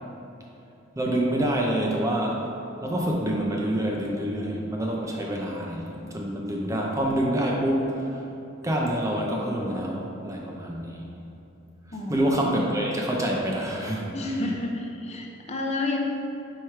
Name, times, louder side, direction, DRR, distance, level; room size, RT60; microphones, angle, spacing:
voice 1, 1.0-2.5 2.8-8.1 8.6-11.1 12.1-14.1, right 1 dB, 15° right, -1 dB, 0.5 m, -27 dB
voice 2, 11.9-12.8 14.1-16.0, left 2 dB, 30° left, 1 dB, 0.6 m, -31 dB
4.7 x 4.4 x 4.6 m, 2.9 s
head